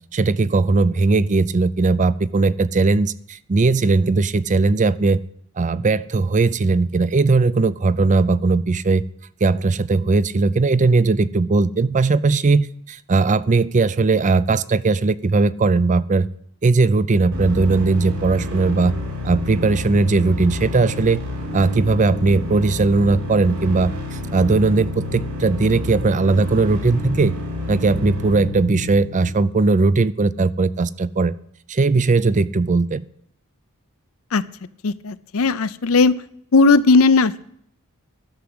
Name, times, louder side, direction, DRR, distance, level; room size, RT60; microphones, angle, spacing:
voice 1, 0.1-5.2 5.6-9.0 9.4-16.3 16.6-18.9 19.2-21.2 21.5-23.9 24.3-27.3 27.7-31.3 31.7-33.0, right 3 dB, 35° right, 17 dB, 0.5 m, -18 dB
sound 1, 17.3-29.3, left 2 dB, 75° right, 5.4 m, -29 dB
voice 2, 34.8-36.2 36.5-37.4, left 3 dB, 70° left, 15 dB, 0.6 m, -16 dB
11.5 x 7.1 x 7.8 m, 0.70 s
head